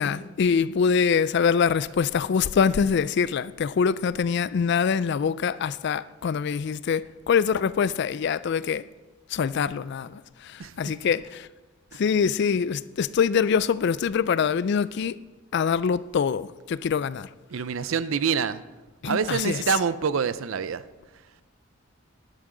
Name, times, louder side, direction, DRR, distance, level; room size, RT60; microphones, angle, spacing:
voice 1, 0.0-8.8 9.3-11.5 11.9-15.2 15.5-17.3 19.0-19.6, left 6 dB, 55° left, 0.3 m, -24 dB
voice 2, 10.6-11.1 12.0-12.1 17.5-18.6 19.0-20.8, right 6 dB, 70° right, 0.5 m, -26 dB
12.0 x 11.0 x 3.8 m
head